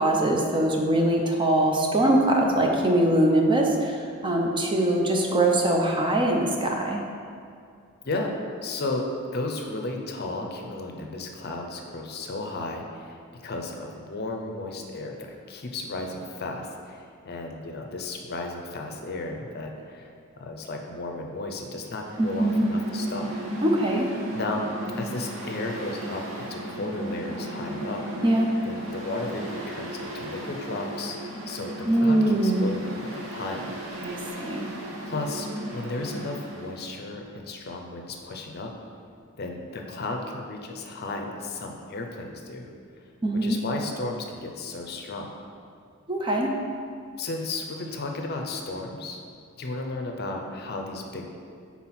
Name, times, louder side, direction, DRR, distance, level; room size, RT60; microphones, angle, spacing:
voice 1, 0.0-7.0 22.2-22.7 23.6-24.1 28.2-28.5 31.9-32.7 34.0-34.7 43.2-43.6 46.1-46.5, right 1 dB, 25° right, 1 dB, 0.5 m, -22 dB
voice 2, 8.6-9.0 9.3-23.3 24.3-28.0 28.6-31.2 31.5-33.8 34.3-34.7 35.1-35.5 35.7-38.7 39.4-42.7 43.4-45.3 47.2-49.2 49.6-51.2, left 2 dB, 50° left, 2 dB, 0.6 m, -34 dB
Mechanical fan, 21.9-36.8, right 1 dB, 65° right, 1.0 m, -35 dB
4.3 x 4.2 x 5.7 m, 2.3 s
head